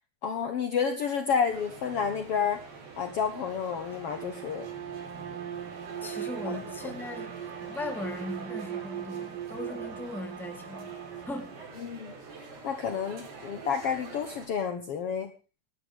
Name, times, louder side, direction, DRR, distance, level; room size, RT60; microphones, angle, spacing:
voice 1, 0.2-2.6 2.9-4.7 6.4-7.0 11.8-12.1 12.6-15.3, left 7 dB, 80° left, 1.3 m, -30 dB
sound 1, 1.5-14.5, right 4 dB, 85° right, 5.9 m, -46 dB
Bowed string instrument, 4.1-11.6, right 10 dB, 65° right, 2.8 m, -39 dB
voice 2, 6.0-7.3 7.6-10.9 11.3-11.6, left 2 dB, ahead, 1.6 m, -38 dB
25.0 x 11.5 x 3.6 m
omnidirectional pair, 4.4 m